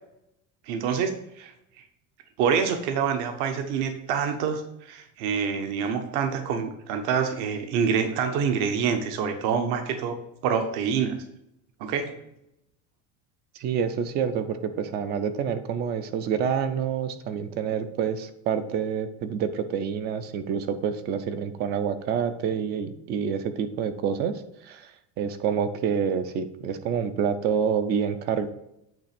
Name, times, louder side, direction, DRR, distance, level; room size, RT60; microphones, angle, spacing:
voice 1, 0.7-1.5 2.4-10.2 10.4-11.2 11.8-12.1, right 6 dB, 55° right, 6 dB, 0.9 m, -26 dB
voice 2, 13.6-24.9 25.2-28.5, right 7 dB, 30° right, 11 dB, 0.4 m, -27 dB
8.7 x 3.3 x 5.8 m, 0.84 s
cardioid pair, 180°, 37 cm